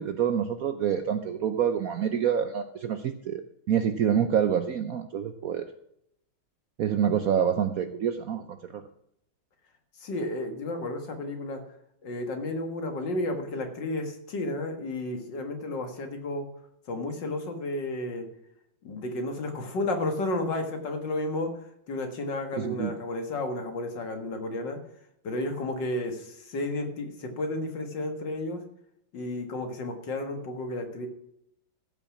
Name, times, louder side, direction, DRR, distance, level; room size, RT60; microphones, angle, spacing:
voice 1, 0.0-3.4 3.7-5.7 6.8-8.8 22.6-22.9, right 8 dB, 65° right, 9 dB, 0.9 m, -27 dB
voice 2, 9.9-11.6 12.0-16.5 16.9-18.3 18.8-24.8 25.2-28.6 29.1-31.1, left 2 dB, 65° left, 5 dB, 2.3 m, -32 dB
14.5 x 6.0 x 7.1 m, 0.76 s
omnidirectional pair, 2.2 m